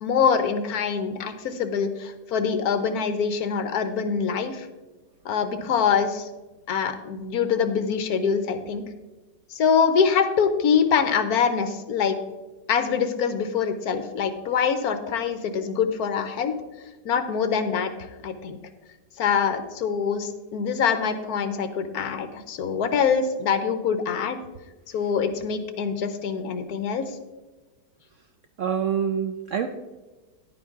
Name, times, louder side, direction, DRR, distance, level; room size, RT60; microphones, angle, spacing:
voice 1, 0.0-4.7 5.2-6.3 6.7-8.8 9.5-12.2 12.7-16.5 17.0-17.9 18.2-18.6 19.2-24.4 24.9-27.1, left 6 dB, 70° left, 10 dB, 1.2 m, -24 dB
voice 2, 28.6-29.7, right 8 dB, 70° right, 7 dB, 0.7 m, -26 dB
10.5 x 9.1 x 3.6 m, 1.2 s
omnidirectional pair, 1.8 m